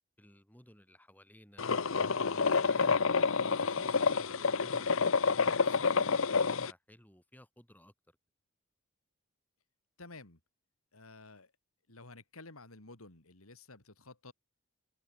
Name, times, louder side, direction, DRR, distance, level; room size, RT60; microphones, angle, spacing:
voice 1, 0.2-1.8 2.3-3.1 3.6-8.2, equal, 10° left, 7.8 m, -58 dB
sound 1, 1.6-6.7, left 5 dB, 65° left, 0.9 m, -28 dB
voice 2, 10.0-10.4 10.9-11.5 11.9-14.3, left 3 dB, 85° left, 3.5 m, -52 dB
head